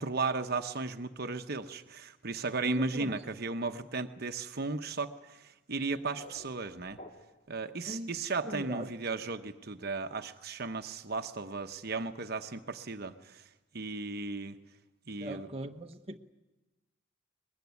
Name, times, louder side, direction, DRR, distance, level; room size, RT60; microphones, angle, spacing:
voice 1, 0.0-7.0 7.5-13.5 13.7-14.6 15.1-15.5, right 3 dB, 50° right, 1.0 m, -35 dB
voice 2, 2.6-3.2 7.9-8.1 8.4-8.9 15.2-16.2, right 1 dB, 30° right, 1.0 m, -39 dB
sound 1, 5.7-7.6, left 1 dB, 35° left, 2.3 m, -53 dB
23.5 x 21.0 x 9.5 m
head